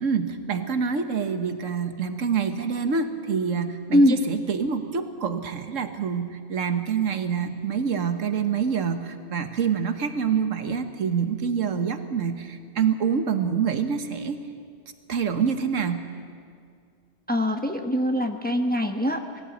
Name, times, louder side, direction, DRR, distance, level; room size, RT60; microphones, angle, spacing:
voice 1, 0.0-14.4 15.1-16.1, right 6 dB, 80° right, 8 dB, 1.5 m, -26 dB
voice 2, 17.3-19.2, left 1 dB, 10° left, 4 dB, 0.9 m, -22 dB
20.5 x 15.5 x 8.4 m, 2.2 s
omnidirectional pair, 1.3 m